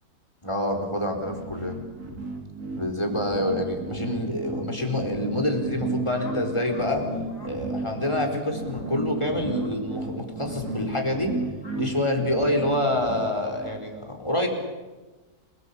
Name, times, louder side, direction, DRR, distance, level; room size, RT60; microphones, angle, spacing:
voice 1, 0.4-1.8 2.7-7.1 7.4-11.3 11.7-14.5, left 1 dB, 15° left, 2 dB, 4.6 m, -27 dB
sound 1, 1.2-13.8, right 2 dB, 65° right, 4.2 m, -33 dB
sound 2, 6.1-6.9 7.2-7.5 8.0-8.3 8.6-8.9 9.5-9.7 10.5-10.7 11.6-11.8, left 2 dB, 85° left, 3.9 m, -48 dB
29.5 x 20.0 x 8.5 m, 1.2 s
omnidirectional pair, 1.7 m